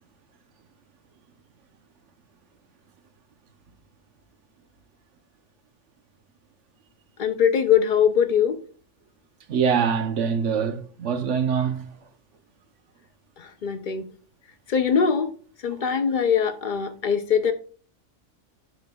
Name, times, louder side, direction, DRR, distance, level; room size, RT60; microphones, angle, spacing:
voice 1, 7.2-8.6 13.6-14.0 14.7-15.3 15.6-17.5, left 7 dB, 60° left, 0.5 m, -21 dB
voice 2, 9.5-11.8, right 7 dB, 65° right, 1.0 m, -24 dB
10.5 x 5.2 x 2.3 m
omnidirectional pair, 1.4 m